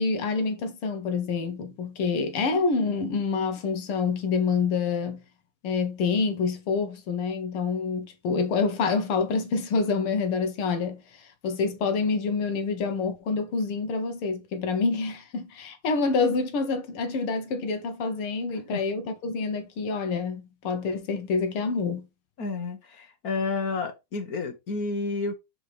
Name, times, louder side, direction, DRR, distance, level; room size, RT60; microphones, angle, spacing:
voice 1, 0.0-5.2 5.6-22.1, left 4 dB, 75° left, 2.2 m, -27 dB
voice 2, 22.4-25.3, left 3 dB, 50° left, 1.5 m, -30 dB
5.3 x 4.8 x 4.9 m
omnidirectional pair, 2.4 m